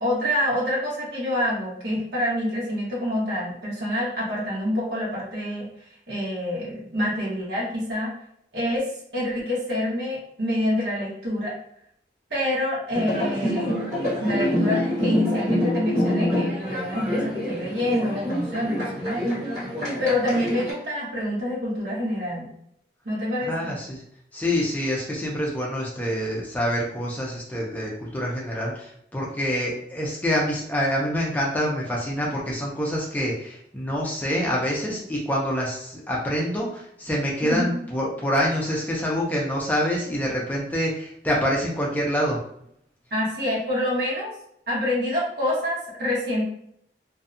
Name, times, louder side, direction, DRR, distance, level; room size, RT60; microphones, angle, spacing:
voice 1, 0.0-5.7 6.1-8.1 8.5-8.9 9.1-11.5 12.3-13.9 14.2-19.5 20.0-22.5 23.0-23.8 37.4-37.8 43.1-44.3 44.7-46.4, left 1 dB, 65° right, -6 dB, 1.1 m, -27 dB
sound 1, 12.9-20.7, equal, 45° right, 1.4 m, -26 dB
voice 2, 23.5-24.0 24.3-42.4, equal, 10° left, -4 dB, 0.4 m, -26 dB
2.6 x 2.2 x 2.5 m, 0.71 s
head